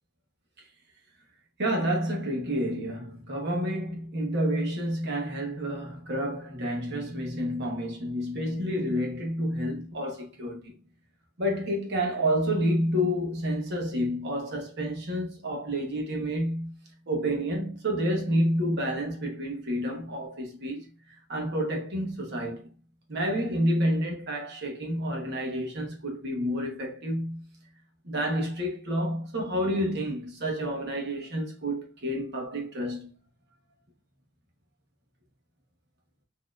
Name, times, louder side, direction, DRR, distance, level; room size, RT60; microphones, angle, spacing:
voice 1, 1.6-10.7 11.4-22.7 23.1-27.5 28.0-33.1, equal, 60° right, 1.0 m, -29 dB
4.1 x 2.8 x 2.4 m
head